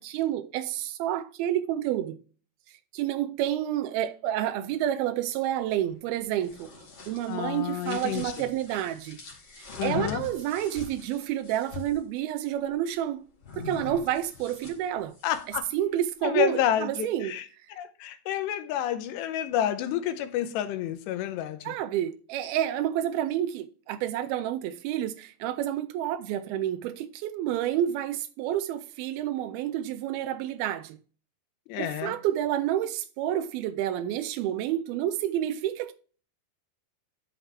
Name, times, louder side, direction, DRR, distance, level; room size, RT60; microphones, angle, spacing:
voice 1, 0.0-2.2 2.9-6.7 7.1-9.2 9.6-13.3 13.6-15.1 15.7-17.3 21.7-31.0 31.8-35.9, right 11 dB, 85° right, 2.2 m, -29 dB
sound 1, 6.2-12.0 13.4-15.7, left 5 dB, 40° left, 2.8 m, -43 dB
voice 2, 7.3-8.5 9.8-10.2 15.2-15.6 16.2-17.5 17.8-21.7 31.7-32.2, left 11 dB, 80° left, 3.0 m, -29 dB
11.5 x 5.8 x 3.4 m
omnidirectional pair, 5.0 m